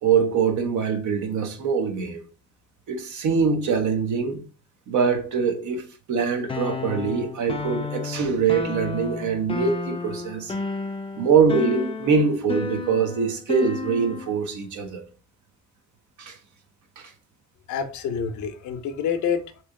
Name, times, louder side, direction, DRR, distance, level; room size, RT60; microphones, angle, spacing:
voice 1, 0.0-2.2 2.9-4.4 4.9-10.5 11.2-15.0 16.2-16.4 17.0-17.1, right 5 dB, 75° right, 0.9 m, -23 dB
sound 1, 6.5-14.4, left 4 dB, 20° left, 0.4 m, -32 dB
voice 2, 17.7-19.6, left 7 dB, 75° left, 0.6 m, -27 dB
3.0 x 2.7 x 3.6 m
cardioid pair, 90°, 30 cm